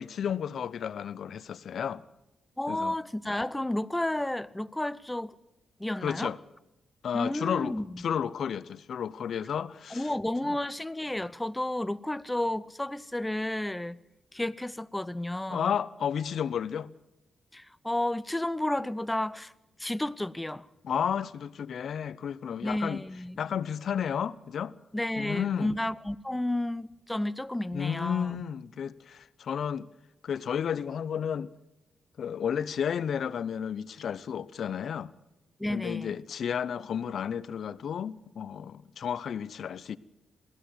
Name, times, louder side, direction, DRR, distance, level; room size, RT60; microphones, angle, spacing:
voice 1, 0.0-2.0 2.7-3.0 6.0-6.4 7.0-10.1 10.4-10.5 15.5-16.9 20.8-23.0 23.4-24.7 25.2-25.7 27.7-29.9 30.2-31.5 32.2-35.1 35.7-40.0, left 8 dB, 70° left, 0.8 m, -32 dB
voice 2, 2.6-5.3 5.8-6.3 7.1-7.9 9.9-14.0 14.3-15.7 17.5-19.5 19.8-20.6 22.6-23.4 24.9-28.4 35.6-36.2, left 1 dB, 10° left, 0.8 m, -32 dB
22.0 x 16.0 x 8.0 m
cardioid pair, 70°, 0 cm